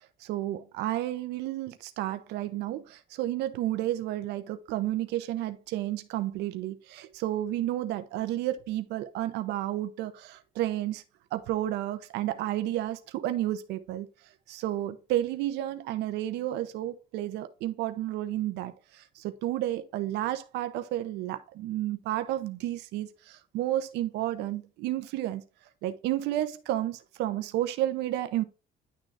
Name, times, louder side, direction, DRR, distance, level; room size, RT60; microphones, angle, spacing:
voice 1, 0.2-11.0 11.3-14.1 14.5-18.7 19.2-25.4 25.8-28.4, right 13 dB, 85° right, 0.7 m, -31 dB
10.5 x 3.8 x 3.4 m
cardioid pair, 110°, 17 cm